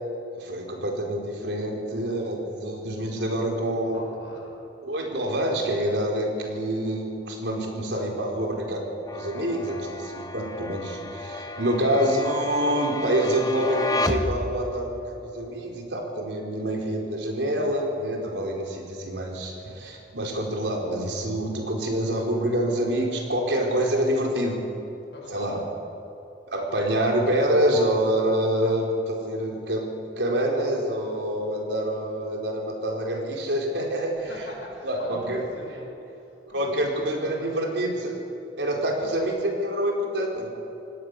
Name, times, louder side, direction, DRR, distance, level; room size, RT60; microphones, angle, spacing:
voice 1, 0.3-4.0 4.8-8.8 9.1-24.6 25.3-25.6 26.5-34.3 34.8-35.4 36.5-38.2 38.6-39.3 39.6-40.5, right 1 dB, 90° right, 0 dB, 4.6 m, -26 dB
voice 2, 3.9-4.6 25.1-25.7 34.3-37.6 39.0-39.2, left 1 dB, 80° left, -2 dB, 6.1 m, -40 dB
sound 1, 9.1-15.0, left 2 dB, 20° left, 1.0 m, -32 dB
26.5 x 18.0 x 6.8 m, 2.9 s
head